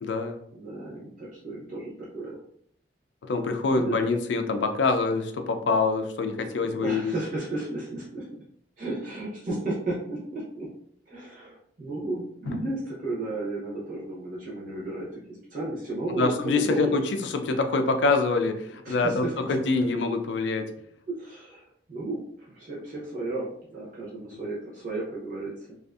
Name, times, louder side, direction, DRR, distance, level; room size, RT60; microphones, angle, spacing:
voice 1, 0.0-0.4 3.2-7.1 12.5-12.6 16.1-20.7, left 3 dB, 75° left, 7 dB, 0.4 m, -25 dB
voice 2, 0.5-2.4 3.7-4.0 6.6-8.4 8.8-10.7 11.1-15.2 15.5-16.9 18.8-19.5 21.1-25.7, right 2 dB, 50° right, -6 dB, 0.7 m, -33 dB
2.6 x 2.4 x 2.3 m, 0.67 s
head